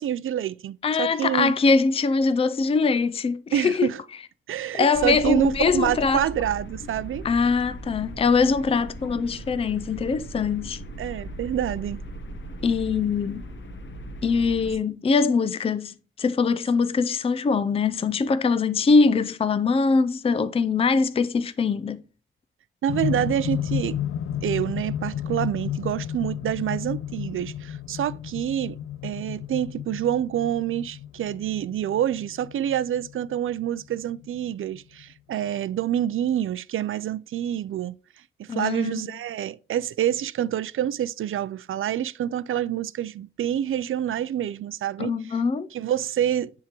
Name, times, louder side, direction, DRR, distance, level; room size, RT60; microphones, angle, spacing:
voice 1, 0.0-1.5 3.5-4.0 4.5-7.3 11.0-12.0 22.8-24.0 24.4-38.0 38.4-45.1 45.7-46.5, right 10 dB, 75° right, 0.4 m, -27 dB
voice 2, 0.8-3.9 4.8-6.2 7.2-10.8 12.6-13.5 14.2-22.0 38.5-39.0 45.0-45.7, left 4 dB, 25° left, 0.4 m, -22 dB
sound 1, 4.9-14.8, equal, 60° left, 1.2 m, -38 dB
sound 2, 22.9-35.0 36.0-36.1, left 10 dB, 85° left, 0.4 m, -32 dB
10.0 x 3.6 x 3.0 m
wide cardioid pair, 110°, 21 cm